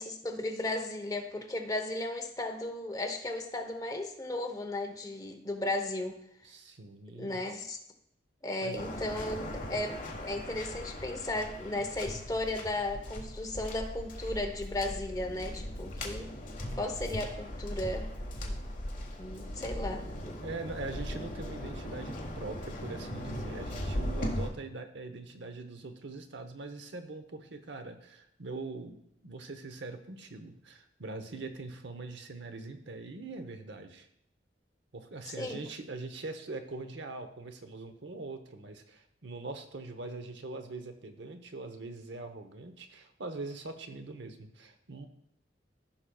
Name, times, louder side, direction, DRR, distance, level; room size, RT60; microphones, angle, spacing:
voice 1, 0.0-6.2 7.1-7.8 8.4-16.3 16.7-18.1 18.4-18.6 19.2-20.0 35.4-35.6, left 2 dB, 20° left, 4 dB, 0.9 m, -35 dB
voice 2, 6.4-7.4 8.6-8.8 19.6-19.7 20.4-34.1 34.9-45.1, right 3 dB, 80° right, 7 dB, 0.8 m, -42 dB
Waves surf, 8.8-24.5, left 1 dB, 45° left, 1.4 m, -38 dB
15.0 x 5.8 x 2.3 m, 0.74 s
head